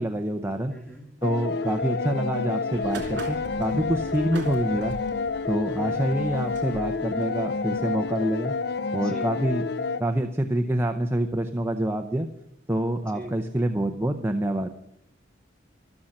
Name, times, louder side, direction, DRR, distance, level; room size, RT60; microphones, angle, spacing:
voice 1, 0.0-0.7 1.2-5.0 5.5-8.5 8.9-9.6 10.0-12.3 12.7-14.7, right 1 dB, 15° right, 5 dB, 0.7 m, -26 dB
voice 2, 0.7-1.1 9.0-9.3 13.2-13.4, right 1 dB, 5° left, 1 dB, 2.4 m, -39 dB
sound 1, 1.2-10.0, left 4 dB, 55° left, 0.5 m, -29 dB
sound 2, 2.7-8.6, right 1 dB, 65° right, 3.5 m, -43 dB
13.0 x 13.0 x 6.5 m, 0.79 s
head